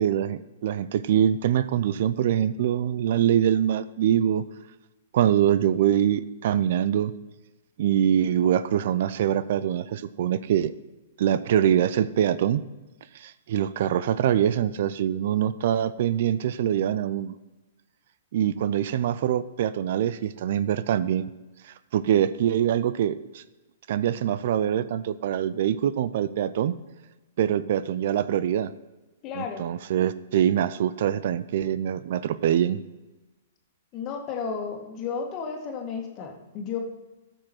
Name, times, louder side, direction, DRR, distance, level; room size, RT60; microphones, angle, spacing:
voice 1, 0.0-4.4 5.1-7.1 7.8-10.7 11.2-12.6 13.1-17.3 18.3-21.3 21.6-23.4 23.9-26.7 27.4-28.7 29.3-32.8, right 10 dB, 60° right, 16 dB, 0.4 m, -24 dB
voice 2, 29.2-29.6 33.9-36.8, left 6 dB, 35° left, 3 dB, 1.8 m, -33 dB
13.5 x 6.3 x 4.4 m, 1.1 s
hypercardioid pair, 115°, 0 cm